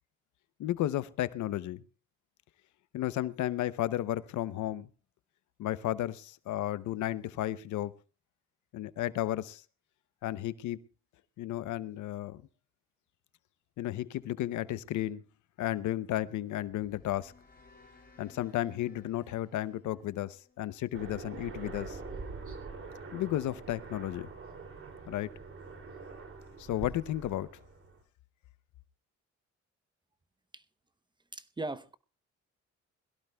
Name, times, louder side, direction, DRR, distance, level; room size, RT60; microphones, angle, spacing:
voice 1, 0.6-1.8 2.9-4.9 5.6-7.9 8.7-9.6 10.2-10.8 11.4-12.4 13.8-15.2 15.6-17.3 18.2-22.0 23.1-24.3 25.1-25.3 26.6-27.5, left 13 dB, 75° left, 0.7 m, -33 dB
sound 1, 16.4-21.5, left 3 dB, 30° left, 5.5 m, -60 dB
Aircraft, 20.9-28.0, right 4 dB, 45° right, 2.7 m, -44 dB
voice 2, 31.3-32.0, right 2 dB, 15° right, 0.7 m, -38 dB
21.5 x 16.5 x 2.3 m
cardioid pair, 90°, 30 cm